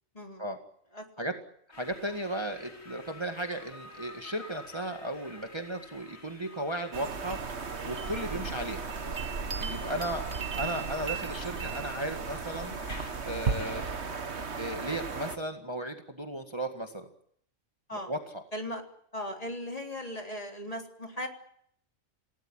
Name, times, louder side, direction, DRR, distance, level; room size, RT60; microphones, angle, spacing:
sound 1, 1.7-13.8, left 2 dB, 85° left, 4.8 m, -49 dB
voice 1, 1.8-7.4 7.8-8.9 9.6-10.2 10.6-12.7 13.3-14.2 14.6-17.1 17.9-18.4, right 1 dB, 20° right, 5 dB, 1.9 m, -35 dB
sound 2, 6.9-15.4, right 5 dB, 55° right, 1.8 m, -35 dB
voice 2, 18.5-18.8 19.1-21.3, left 1 dB, 30° left, 3 dB, 3.8 m, -37 dB
28.5 x 18.0 x 9.0 m, 0.69 s
omnidirectional pair, 1.3 m